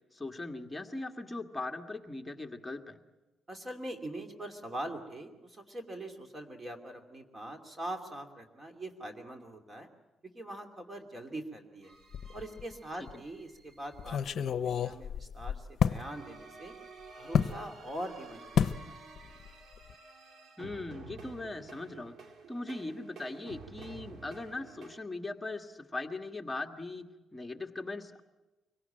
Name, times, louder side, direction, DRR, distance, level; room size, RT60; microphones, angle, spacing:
voice 1, 0.1-3.0 20.6-22.2 22.5-27.1 27.3-28.2, left 2 dB, 10° left, 4 dB, 1.7 m, -39 dB
voice 2, 3.5-9.9 10.2-11.9 12.3-16.7 17.2-19.0, right 1 dB, 25° right, 5 dB, 2.8 m, -43 dB
sound 1, 11.8-14.1 15.8-25.0, right 4 dB, 55° right, 2.1 m, -51 dB
sound 2, 12.1-12.7 13.1-13.2 14.0-16.0 17.3-17.6 18.6-18.8 19.2-19.5 19.7-19.9, left 8 dB, 60° left, 0.7 m, -30 dB
24.5 x 17.5 x 9.0 m, 1.1 s
cardioid pair, 90°, 0 cm